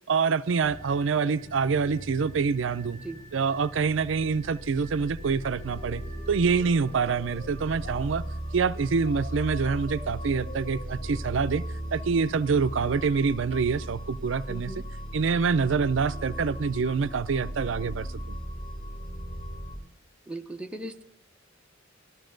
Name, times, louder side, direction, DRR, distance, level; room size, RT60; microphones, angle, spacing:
voice 1, 0.1-3.0 3.3-6.0 6.3-8.2 8.5-11.6 11.9-14.8 15.1-18.4, right 5 dB, 70° right, 13 dB, 0.5 m, -26 dB
sound 1, 0.6-19.8, right 1 dB, 30° left, 3.6 m, -38 dB
sound 2, 5.2-8.0 9.0-12.1, left 3 dB, 70° left, 5.4 m, -48 dB
voice 2, 14.5-14.8 20.3-21.0, right 1 dB, 5° right, 3 dB, 0.7 m, -38 dB
14.0 x 14.0 x 3.9 m, 0.63 s
head